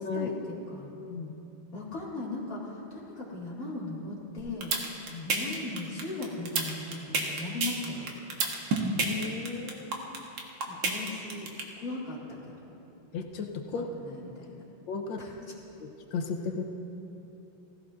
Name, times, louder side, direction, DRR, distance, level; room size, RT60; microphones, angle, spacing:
voice 1, 0.1-0.9 1.7-4.8 5.2-8.1 10.7-11.5 11.8-12.5 13.7-14.6 15.2-15.5, left 2 dB, 40° left, -6 dB, 2.6 m, -38 dB
sound 1, 4.4-11.6, right 3 dB, 65° right, 1.8 m, -29 dB
voice 2, 9.0-10.2 13.1-13.9 14.9-15.2 15.8-16.6, left 5 dB, 70° left, 3 dB, 1.5 m, -35 dB
17.0 x 15.5 x 2.5 m, 2.9 s
omnidirectional pair, 2.3 m